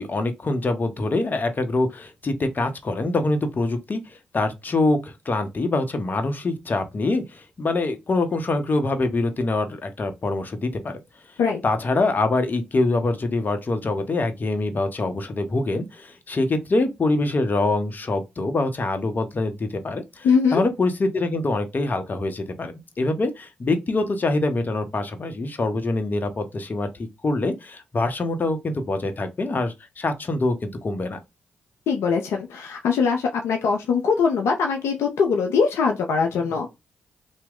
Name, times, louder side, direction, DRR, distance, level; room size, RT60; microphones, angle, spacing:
voice 1, 0.0-11.0 11.6-26.9 27.2-31.2, left 2 dB, 40° left, 0.8 m, -25 dB
voice 2, 20.2-20.6 31.9-36.7, left 5 dB, 70° left, 0.5 m, -22 dB
2.9 x 2.1 x 3.6 m
hypercardioid pair, 40°, 5 cm